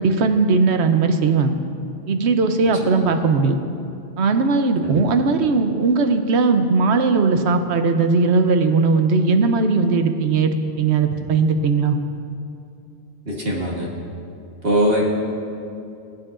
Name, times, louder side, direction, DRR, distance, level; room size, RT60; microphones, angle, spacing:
voice 1, 0.0-1.6 2.1-3.6 4.2-12.0, right 4 dB, 85° right, 7 dB, 1.0 m, -18 dB
voice 2, 13.3-13.9 14.6-15.0, equal, 60° right, -3 dB, 1.6 m, -21 dB
19.5 x 9.0 x 2.5 m, 2.6 s
omnidirectional pair, 1.1 m